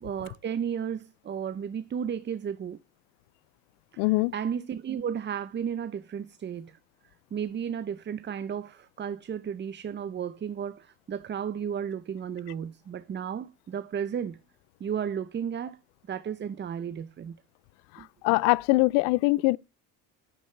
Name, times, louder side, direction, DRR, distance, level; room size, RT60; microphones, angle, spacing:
voice 1, 0.0-2.8 3.9-4.1 4.3-6.8 7.3-14.4 14.8-15.8 16.1-17.3 18.0-18.1, right 8 dB, 30° right, 0.8 m, -33 dB
voice 2, 4.0-4.3 17.9-19.6, left 23 dB, 80° left, 0.5 m, -23 dB
11.5 x 10.5 x 3.4 m
supercardioid pair, 95°, 36 cm